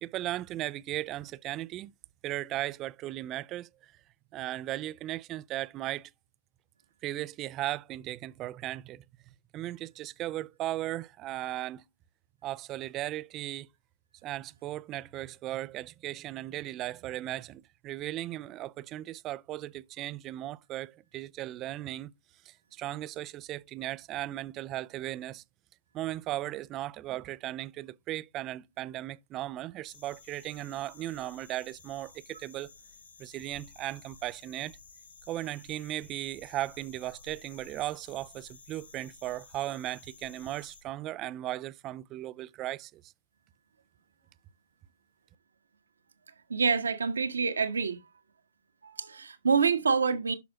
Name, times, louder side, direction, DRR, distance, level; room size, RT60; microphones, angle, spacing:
voice 1, 0.0-1.9 2.2-3.9 4.3-6.1 7.0-9.0 9.5-11.8 12.4-13.7 14.2-22.1 22.4-25.4 25.9-32.7 33.2-34.8 35.3-43.1, right 14 dB, 25° right, 0.4 m, -37 dB
sound 1, 29.8-40.8, left 5 dB, 65° left, 4.4 m, -54 dB
voice 2, 46.5-48.0 48.8-50.3, right 5 dB, 70° right, 1.3 m, -27 dB
10.5 x 6.1 x 2.9 m
figure-of-eight pair, 120°, 0 cm